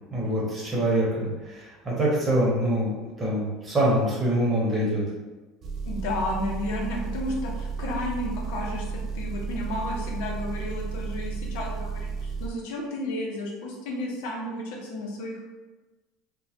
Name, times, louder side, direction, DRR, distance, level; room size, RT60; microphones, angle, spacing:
voice 1, 0.1-5.0, right 1 dB, 20° right, -4 dB, 0.9 m, -25 dB
Engine, 5.6-12.5, right 5 dB, 40° right, 0.4 m, -33 dB
voice 2, 5.8-15.4, left 1 dB, 80° left, -1 dB, 0.6 m, -32 dB
3.0 x 2.1 x 2.8 m, 1.2 s
supercardioid pair, 125°, 0 cm